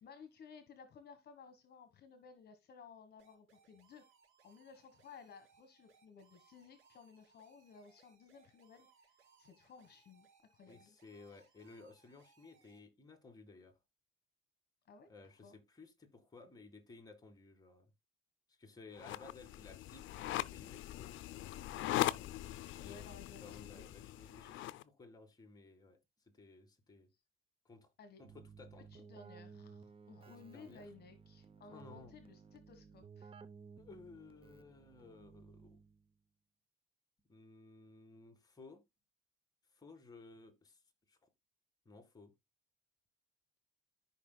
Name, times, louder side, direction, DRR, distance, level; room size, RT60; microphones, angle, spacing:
voice 1, 0.0-4.1 4.4-9.1 9.4-10.3 10.5-10.9 14.9-15.1 15.4-15.6 22.8-23.9 28.0-28.2 28.9-33.3, left 5 dB, 50° left, 1.4 m, -57 dB
sound 1, 3.2-12.8, right 6 dB, 75° right, 4.4 m, -70 dB
voice 2, 10.7-13.8 15.1-17.9 18.5-21.2 21.7-26.0 26.3-27.1 27.7-27.9 28.2-29.0 30.4-30.8 31.7-32.2 33.8-35.8 37.3-38.8 39.7-40.8 41.1-41.3 41.9-42.3, left 3 dB, 20° left, 1.9 m, -57 dB
sound 2, 19.0-24.8, left 14 dB, 70° left, 0.5 m, -40 dB
Keyboard (musical), 28.2-36.1, right 5 dB, 25° right, 0.7 m, -57 dB
13.5 x 5.5 x 2.2 m
cardioid pair, 145°, 21 cm